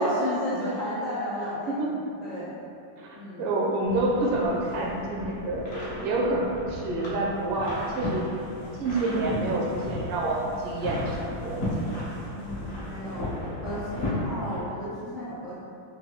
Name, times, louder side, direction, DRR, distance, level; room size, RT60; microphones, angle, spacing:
voice 1, 0.0-2.6 3.1-3.5 5.9-6.1 9.0-9.3 12.3-15.6, left 1 dB, 75° left, -13 dB, 0.4 m, -34 dB
voice 2, 3.0-8.3 8.8-12.0, right 2 dB, 85° right, -3 dB, 1.6 m, -28 dB
sound 1, 3.8-14.6, left 1 dB, 50° left, 1.0 m, -35 dB
4.6 x 2.6 x 2.8 m, 2.6 s
omnidirectional pair, 2.4 m